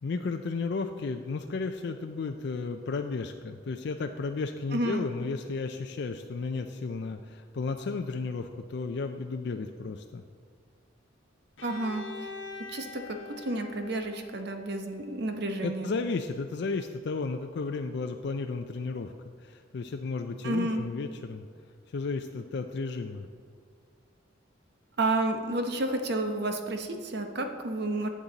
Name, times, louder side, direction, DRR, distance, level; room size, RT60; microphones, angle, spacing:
voice 1, 0.0-10.2 15.6-19.1 19.4-21.5 21.9-23.3, left 4 dB, 60° left, 6 dB, 0.4 m, -33 dB
voice 2, 4.7-5.0 11.6-12.0 12.7-15.9 20.4-20.8 25.0-28.1, right 2 dB, 55° right, 6 dB, 0.9 m, -30 dB
Bowed string instrument, 11.6-15.4, left 4 dB, 85° left, 1.0 m, -44 dB
11.5 x 7.4 x 4.0 m, 2.1 s
head